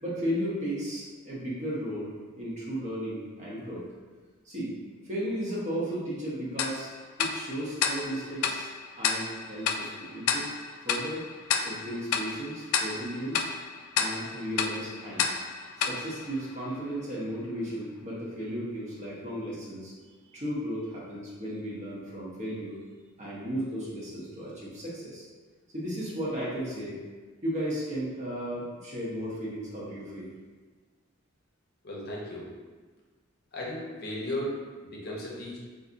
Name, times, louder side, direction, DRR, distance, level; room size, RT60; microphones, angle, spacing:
voice 1, 0.0-3.9 4.4-4.7 5.0-6.9 7.2-8.7 8.9-10.5 10.8-11.2 11.6-13.5 14.0-15.3 15.8-19.9 20.3-22.8 23.2-25.3 25.7-27.0 27.4-30.3, equal, 35° right, -6 dB, 0.7 m, -35 dB
Tick-tock, 6.6-17.0, left 6 dB, 85° left, 0.3 m, -32 dB
voice 2, 31.8-32.5 33.5-35.6, left 1 dB, 50° left, -4 dB, 0.7 m, -35 dB
4.0 x 2.5 x 2.5 m, 1.4 s
head